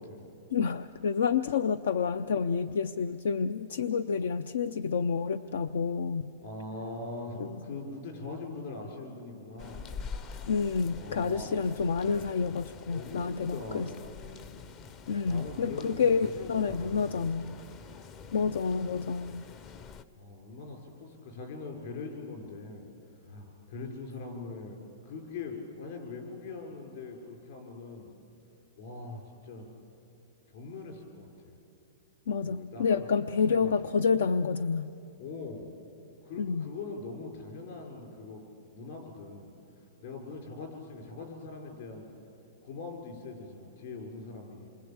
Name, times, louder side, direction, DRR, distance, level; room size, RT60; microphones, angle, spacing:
voice 1, 0.0-0.3 6.4-9.9 10.9-11.7 12.9-14.7 15.2-17.3 20.2-22.9 23.2-28.1 28.8-29.7 30.5-31.5 32.4-33.1 33.5-33.7 35.2-35.7 36.2-38.4 38.7-39.5 40.0-42.1 42.6-44.7, left 3 dB, 50° left, 3 dB, 5.5 m, -42 dB
voice 2, 0.5-6.3 7.4-7.8 10.5-13.9 15.1-17.5 18.3-19.4 32.3-34.9 36.4-36.7, left 5 dB, 85° left, 14 dB, 0.6 m, -29 dB
sound 1, 9.6-20.0, left 6 dB, 25° left, 0.5 m, -46 dB
27.5 x 23.5 x 8.8 m, 2.7 s
supercardioid pair, 165°, 0 cm